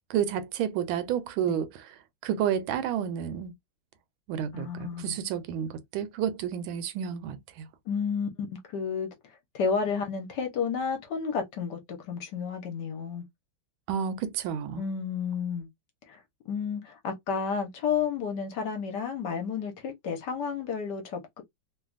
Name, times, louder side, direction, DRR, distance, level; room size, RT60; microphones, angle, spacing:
voice 1, 0.1-1.9 2.2-3.5 4.3-7.7 13.9-14.8, right 9 dB, 85° right, 1.4 m, -30 dB
voice 2, 4.5-5.2 7.9-9.1 9.5-13.2 14.8-15.7 16.1-16.2 16.5-21.4, left 6 dB, 65° left, 1.3 m, -31 dB
3.3 x 2.2 x 2.4 m
omnidirectional pair, 2.2 m